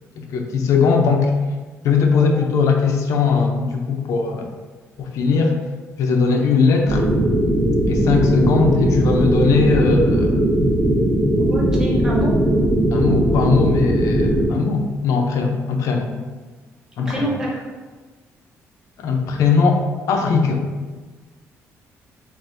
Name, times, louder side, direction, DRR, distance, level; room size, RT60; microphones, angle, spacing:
voice 1, 0.2-1.3 1.8-4.5 5.0-5.6 6.0-7.1 7.9-10.3 12.9-16.1 17.0-17.3 19.0-20.7, left 5 dB, 70° left, 2 dB, 0.6 m, -19 dB
sound 1, 6.9-14.5, right 1 dB, 30° right, 1.2 m, -18 dB
voice 2, 11.5-12.4 17.0-17.6, equal, 10° right, -5 dB, 1.0 m, -26 dB
7.6 x 2.6 x 2.7 m, 1.3 s
cardioid pair, 160°, 6 cm